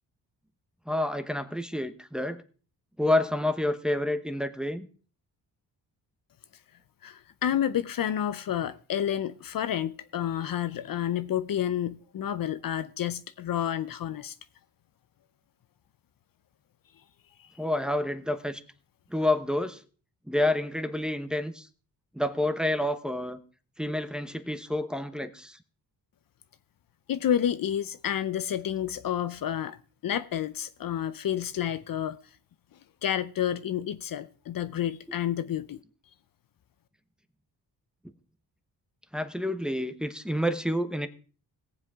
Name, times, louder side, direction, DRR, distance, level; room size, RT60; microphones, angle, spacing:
voice 1, 0.9-2.4 3.0-4.9 17.6-18.6 19.1-19.8 20.3-21.7 22.1-23.4 23.8-25.6 39.1-41.1, left 1 dB, ahead, 0.9 m, -28 dB
voice 2, 7.0-14.3 17.4-17.5 27.1-29.8 30.0-32.2 33.0-35.8, left 10 dB, 55° left, 0.6 m, -30 dB
18.0 x 7.5 x 3.6 m
cardioid pair, 80°, 40 cm